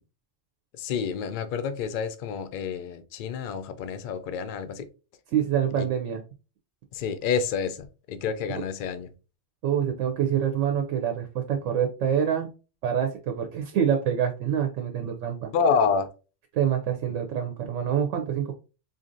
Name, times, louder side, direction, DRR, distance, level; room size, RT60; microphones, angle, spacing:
voice 1, 0.7-4.9 5.8-5.9 6.9-9.1 15.5-16.1, left 6 dB, 60° left, 0.5 m, -28 dB
voice 2, 5.3-6.2 9.6-12.5 12.8-15.5 16.5-18.5, right 8 dB, 80° right, 0.9 m, -26 dB
4.0 x 2.5 x 2.5 m
omnidirectional pair, 1.3 m